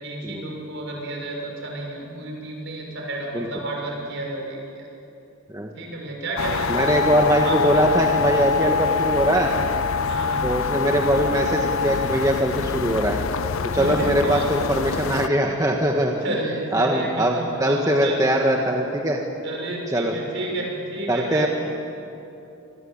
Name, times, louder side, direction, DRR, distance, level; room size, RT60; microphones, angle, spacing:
voice 1, 0.0-4.6 5.7-6.9 7.4-7.9 10.1-10.5 13.6-14.5 16.2-18.3 19.4-21.5, right 2 dB, 55° right, 0 dB, 6.6 m, -31 dB
sound 1, 6.4-15.3, left 5 dB, 70° left, 0.6 m, -25 dB
voice 2, 6.7-9.7 10.4-13.2 13.7-16.2 16.7-19.2 19.9-20.2 21.1-21.5, right 1 dB, 15° right, 1 dB, 1.5 m, -21 dB
27.0 x 21.5 x 8.8 m, 2.8 s
head